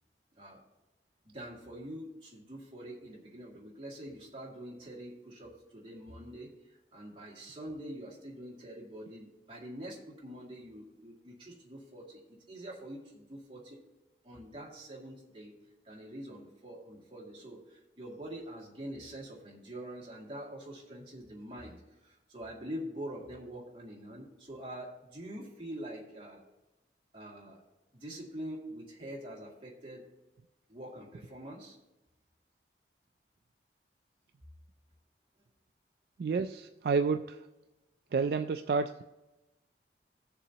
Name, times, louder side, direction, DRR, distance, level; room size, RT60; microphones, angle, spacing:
voice 1, 1.2-12.2 12.5-13.8 14.2-15.5 15.8-26.4 27.1-27.6 27.9-30.1 30.7-31.8, right 1 dB, 30° right, -4 dB, 2.2 m, -45 dB
voice 2, 36.2-37.4 38.1-39.0, right 5 dB, 60° right, 8 dB, 0.3 m, -30 dB
17.0 x 6.9 x 2.9 m, 1.0 s
head